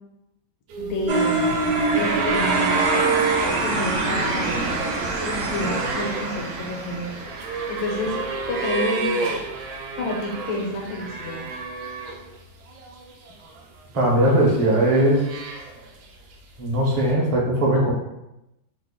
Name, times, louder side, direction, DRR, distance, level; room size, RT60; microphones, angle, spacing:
sound 1, 0.7-12.4 12.7-13.6 14.3-16.0 17.1-17.2, right 4 dB, 75° right, 1.1 m, -30 dB
voice 1, 0.8-1.6 1.9-2.9 3.6-4.7 5.1-8.2 8.5-9.3 10.0-11.4, left 2 dB, 85° left, -1 dB, 1.5 m, -29 dB
sound 2, 1.1-8.0, right 3 dB, 90° right, 0.6 m, -25 dB
voice 2, 13.9-15.2 16.6-17.9, right 1 dB, 45° right, -4 dB, 0.4 m, -19 dB
3.2 x 2.1 x 3.6 m, 0.90 s
omnidirectional pair, 1.9 m